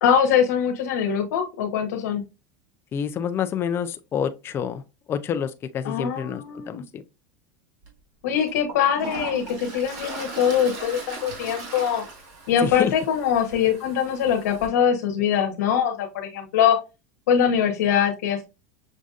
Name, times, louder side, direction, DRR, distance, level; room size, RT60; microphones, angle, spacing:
voice 1, 0.0-2.2 5.8-6.8 8.2-12.0 12.5-16.8 17.3-18.4, left 8 dB, 85° left, 1.0 m, -22 dB
voice 2, 2.9-4.8 5.1-7.0 12.6-12.9, left 8 dB, 30° left, 0.4 m, -28 dB
Toilet flush, 7.8-7.9 8.5-14.7, right 3 dB, 55° right, 2.0 m, -38 dB
6.2 x 2.6 x 2.4 m
supercardioid pair, 125°, 8 cm